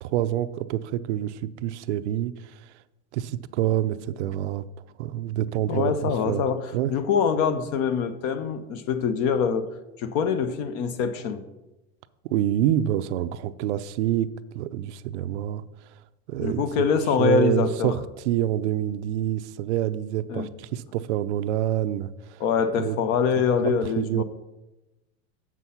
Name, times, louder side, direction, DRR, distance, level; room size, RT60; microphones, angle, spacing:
voice 1, 0.0-2.3 3.1-4.6 5.0-6.5 6.7-6.9 12.2-15.6 16.3-16.6 17.2-22.4 22.8-23.0 23.6-24.2, right 12 dB, 75° right, 0.6 m, -27 dB
voice 2, 5.7-9.7 10.0-11.4 16.4-18.0 20.3-20.5 22.4-24.2, left 6 dB, 40° left, 0.7 m, -24 dB
7.5 x 6.1 x 5.6 m
supercardioid pair, 150°, 35 cm